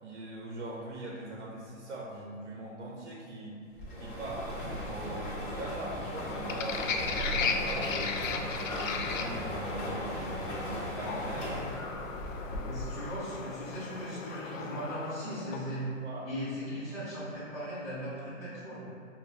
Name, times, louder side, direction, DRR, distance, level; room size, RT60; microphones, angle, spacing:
voice 1, 0.0-3.6 4.0-8.2 8.7-11.7 16.0-16.2, right 2 dB, 60° right, -3 dB, 0.7 m, -41 dB
sound 1, 3.8-13.1, equal, 45° left, 1.3 m, -37 dB
sound 2, 6.1-15.9, left 5 dB, 75° left, 0.5 m, -37 dB
voice 2, 12.6-15.8 16.2-18.8, equal, ahead, -19 dB, 1.0 m, -38 dB
5.3 x 2.4 x 2.4 m, 2.5 s
hypercardioid pair, 170°, 39 cm